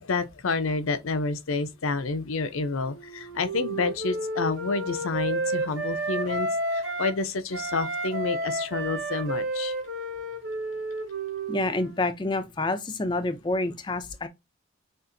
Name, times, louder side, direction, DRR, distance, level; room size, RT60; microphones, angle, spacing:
voice 1, 0.0-9.7, left 3 dB, 90° left, 0.7 m, -29 dB
Wind instrument woodwind instrument, 2.8-7.2 7.5-12.0, right 2 dB, 65° right, 1.7 m, -31 dB
voice 2, 11.5-14.3, left 2 dB, 20° left, 0.4 m, -28 dB
6.5 x 2.5 x 2.6 m
head